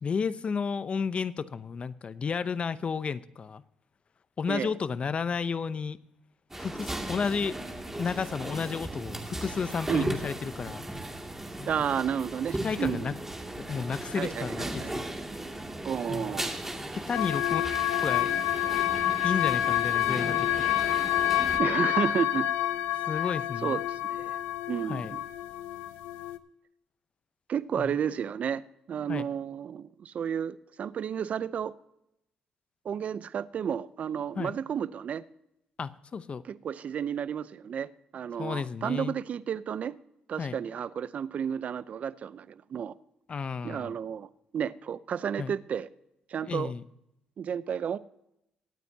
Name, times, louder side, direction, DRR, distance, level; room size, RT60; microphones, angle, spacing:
voice 1, 0.0-3.6 4.4-6.0 6.6-7.6 8.0-10.8 11.6-11.8 12.6-13.2 13.5-15.1 16.1-16.3 16.9-17.6 18.0-18.3 19.2-20.5 23.1-23.8 24.9-25.2 27.8-28.0 29.1-29.3 34.3-34.6 35.8-36.4 38.4-39.1 40.4-40.6 43.3-44.0 45.4-45.6 46.5-46.8, left 5 dB, 45° left, 16 dB, 0.7 m, -32 dB
sound 1, 6.5-21.6, right 1 dB, 15° right, 2.3 m, -37 dB
voice 2, 11.7-13.1 14.2-14.9 15.8-16.5 21.6-22.5 23.6-24.4 24.7-25.2 27.5-28.6 28.9-31.7 32.8-35.2 36.4-39.9 40.3-42.9 43.6-45.9 46.3-46.7 47.4-48.0, right 8 dB, 55° right, 17 dB, 0.6 m, -32 dB
sound 2, 17.1-26.4, left 13 dB, 85° left, 0.6 m, -28 dB
22.5 x 9.2 x 2.8 m, 0.83 s
supercardioid pair, 65°, 3 cm